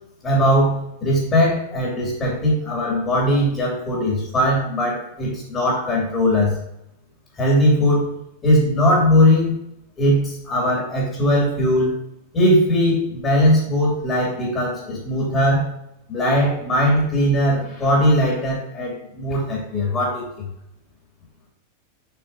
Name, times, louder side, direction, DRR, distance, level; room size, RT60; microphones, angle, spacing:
voice 1, 0.2-6.6 7.4-9.5 10.0-11.9 12.3-15.7 16.1-20.3, equal, 25° left, -4 dB, 2.5 m, -19 dB
6.9 x 5.8 x 2.8 m, 0.80 s
figure-of-eight pair, 90°, 0 cm